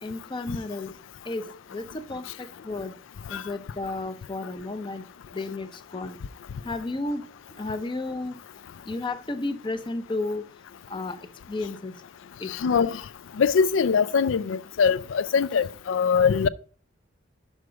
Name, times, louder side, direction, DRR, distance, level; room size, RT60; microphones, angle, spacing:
voice 1, 0.0-0.9 1.2-2.9 3.3-5.0 5.3-6.2 6.6-7.3 7.6-8.4 8.9-10.4 10.9-11.2 11.5-11.9 12.4-12.5, left 2 dB, 25° left, 0.6 m, -32 dB
voice 2, 12.5-13.0 13.4-16.5, left 6 dB, 75° left, 0.4 m, -22 dB
6.3 x 4.6 x 5.0 m
head